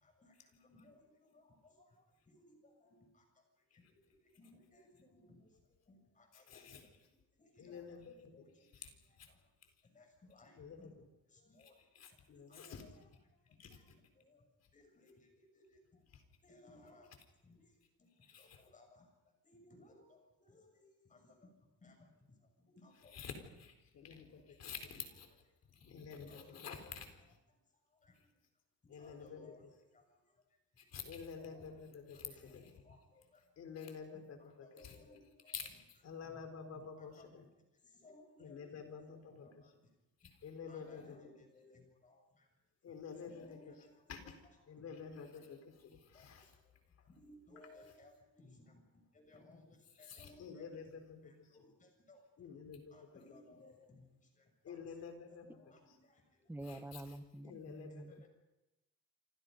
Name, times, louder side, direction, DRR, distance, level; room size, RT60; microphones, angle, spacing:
voice 1, 0.0-0.3 0.6-1.9 2.3-3.1 4.4-5.5 5.9-6.6 7.4-7.8 8.2-8.5 9.9-10.9 11.3-11.7 12.5-13.1 13.7-13.9 14.1-14.4 14.7-15.8 16.4-17.1 17.4-17.6 18.4-19.0 19.4-21.5 21.8-22.0 22.8-23.2 25.2-25.3 26.2-26.9 27.2-27.3 28.0-28.1 29.0-29.6 29.9-30.0 31.4-31.6 32.1-33.4 34.4-35.8 36.2-36.4 37.0-37.3 38.0-38.8 39.3-39.5 40.7-42.4 43.2-45.1 45.3-45.4 46.1-46.3 47.1-48.8 49.1-49.7 50.0-50.9 51.2-52.2 52.9-54.1 54.7-54.8 55.4-56.2 56.6-56.9 57.9-58.3, left 2 dB, 25° left, 3 dB, 6.8 m, -62 dB
voice 2, 6.5-6.9 7.6-8.3 8.8-8.9 9.2-9.3 10.6-11.1 11.9-12.9 13.6-14.0 16.1-16.2 18.3-18.6 23.1-25.3 25.7-27.1 28.9-29.7 30.8-33.0 33.6-35.0 35.5-35.7 36.0-37.5 38.4-39.5 40.4-41.2 42.8-43.7 44.1-44.4 44.7-46.5 50.1-51.3 52.4-53.1 54.6-55.5 56.7-56.8 57.4-58.2, left 6 dB, 50° left, 6 dB, 4.3 m, -49 dB
voice 3, 56.5-58.3, right 1 dB, 5° right, 10 dB, 1.0 m, -47 dB
28.0 x 27.0 x 5.4 m, 0.99 s
cardioid pair, 170°, 32 cm